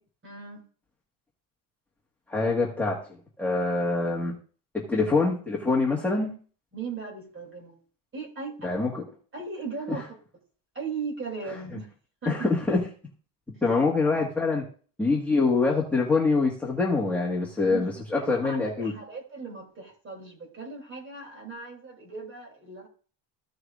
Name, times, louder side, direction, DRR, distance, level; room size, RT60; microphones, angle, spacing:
voice 1, 0.2-0.6 6.7-7.8 8.1-8.7 9.3-10.2 10.7-11.9 12.2-12.5 17.6-17.8 18.2-22.9, right 5 dB, 25° right, 2 dB, 3.1 m, -37 dB
voice 2, 2.3-3.0 3.4-4.3 4.7-6.3 8.6-9.0 12.2-12.8 13.6-14.7 15.0-18.9, left 3 dB, 5° left, -6 dB, 1.6 m, -25 dB
15.0 x 6.3 x 2.5 m, 0.40 s
cardioid pair, 145°, 47 cm